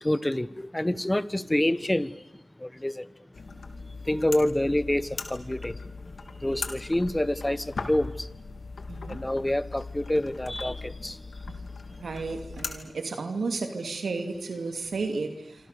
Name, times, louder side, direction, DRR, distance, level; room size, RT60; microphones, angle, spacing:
voice 1, 0.0-2.1 2.6-3.1 4.1-5.7 6.4-8.3 9.1-11.2, left 1 dB, 20° left, 1.2 m, -27 dB
sound 1, 3.3-12.8, left 4 dB, 85° left, 2.6 m, -39 dB
voice 2, 8.9-9.2 12.0-15.7, right 3 dB, 90° right, 2.6 m, -33 dB
27.0 x 26.0 x 6.8 m
cardioid pair, 50°, 0 cm